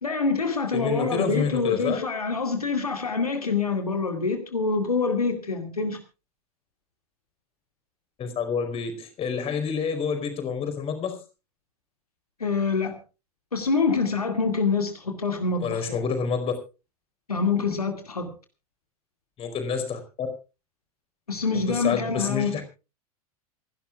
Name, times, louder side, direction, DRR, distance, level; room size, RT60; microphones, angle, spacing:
voice 1, 0.0-6.0 12.4-12.9 13.5-16.0 17.3-18.3 21.3-22.6, left 4 dB, 80° left, 2.4 m, -26 dB
voice 2, 0.7-2.0 8.2-11.2 15.6-16.5 19.4-20.3 21.5-22.6, left 6 dB, 30° left, 4.7 m, -28 dB
27.5 x 12.0 x 2.4 m
figure-of-eight pair, 85°, 19 cm